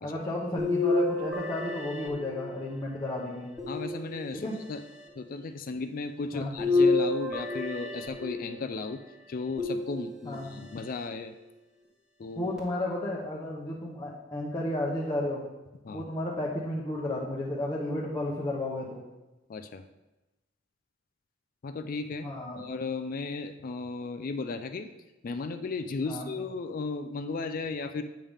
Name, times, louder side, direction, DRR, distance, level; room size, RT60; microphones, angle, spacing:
voice 1, 0.0-3.5 4.3-4.5 6.3-6.5 10.2-10.5 12.4-15.4 15.9-19.0 22.2-22.7 26.1-26.3, left 1 dB, 20° left, -5 dB, 0.9 m, -33 dB
sound 1, 0.6-2.8 3.6-4.6 6.6-8.6 9.6-10.4 11.1-11.2 12.6-12.7, left 2 dB, 5° right, 1.4 m, -29 dB
voice 2, 3.7-4.8 5.2-9.0 9.3-11.3 12.2-12.5 15.8-16.1 19.5-19.8 21.6-22.3 22.6-24.9 25.2-28.0, left 4 dB, 50° left, 8 dB, 0.4 m, -35 dB
8.5 x 5.5 x 3.5 m, 1.0 s
head